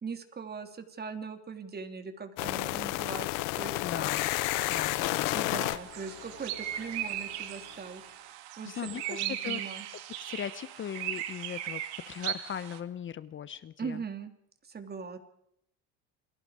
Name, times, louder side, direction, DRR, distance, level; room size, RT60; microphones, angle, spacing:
voice 1, 0.0-3.3 3.5-4.2 5.3-8.3 8.6-9.9 13.8-14.3 14.6-15.2, right 5 dB, 30° right, 7 dB, 3.2 m, -40 dB
sound 1, 2.4-7.2, left 22 dB, 75° left, 0.9 m, -32 dB
voice 2, 3.8-4.3 4.6-5.3 5.7-5.8 8.6-9.6 10.1-14.0, left 9 dB, 35° left, 15 dB, 1.0 m, -39 dB
sound 2, 4.2-12.8, right 12 dB, 90° right, 2.3 m, -38 dB
29.0 x 21.5 x 5.0 m, 0.74 s
supercardioid pair, 100°, 33 cm